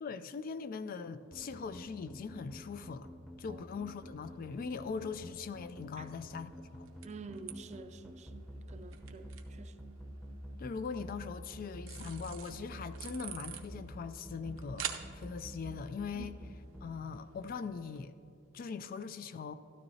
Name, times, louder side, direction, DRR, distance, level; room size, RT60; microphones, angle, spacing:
voice 1, 0.0-3.1 3.4-6.9 10.6-16.3 16.8-18.1 18.5-19.5, left 5 dB, 45° left, 0.3 m, -41 dB
sound 1, 1.3-16.9, equal, 5° left, 0.7 m, -48 dB
voice 2, 3.5-3.9 6.0-6.1 7.0-9.9 16.1-16.3, right 4 dB, 35° right, 0.4 m, -49 dB
sound 2, 4.0-18.1, right 9 dB, 75° right, 0.7 m, -50 dB
13.0 x 12.5 x 2.8 m
head